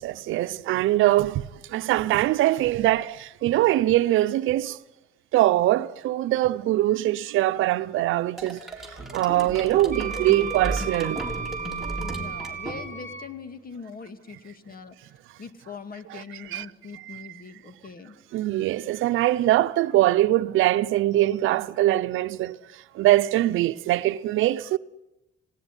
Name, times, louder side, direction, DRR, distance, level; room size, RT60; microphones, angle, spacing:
voice 1, 0.0-1.4 1.7-4.8 5.3-8.7 9.1-11.2 16.1-16.7 16.9-17.3 18.3-22.6 22.9-24.8, right 15 dB, 85° right, 0.7 m, -22 dB
sound 1, 8.4-13.2, right 1 dB, ahead, 4.2 m, -35 dB
Wind instrument woodwind instrument, 9.9-13.3, right 6 dB, 40° right, 1.8 m, -34 dB
voice 2, 12.0-15.0 15.4-18.1, left 5 dB, 45° left, 2.2 m, -42 dB
19.5 x 17.5 x 9.9 m
cardioid pair, 90°, 20 cm